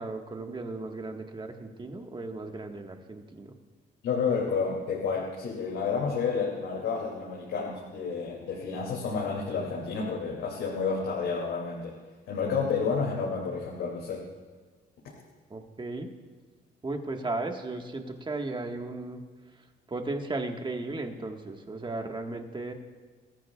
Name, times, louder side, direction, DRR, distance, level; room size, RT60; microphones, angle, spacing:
voice 1, 0.0-3.6 15.5-16.1 16.8-19.2 19.9-22.7, right 2 dB, 25° right, 3 dB, 1.6 m, -35 dB
voice 2, 4.0-12.0 12.3-14.2, left 5 dB, 85° left, -3 dB, 2.7 m, -30 dB
22.5 x 14.5 x 2.4 m, 1.5 s
cardioid pair, 90°, 20 cm